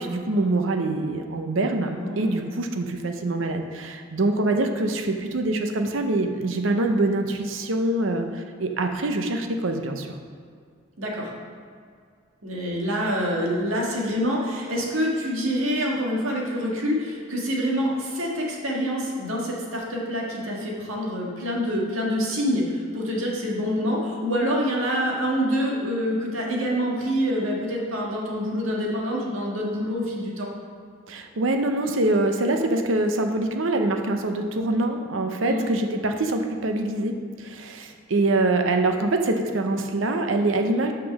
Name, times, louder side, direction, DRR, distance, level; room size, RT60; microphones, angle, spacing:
voice 1, 0.0-10.1 31.1-40.9, right 2 dB, 70° right, 5 dB, 0.7 m, -24 dB
voice 2, 1.9-2.5 11.0-11.3 12.4-30.5 35.4-35.7, equal, 90° right, -2 dB, 1.7 m, -26 dB
6.3 x 6.0 x 6.0 m, 2.1 s
head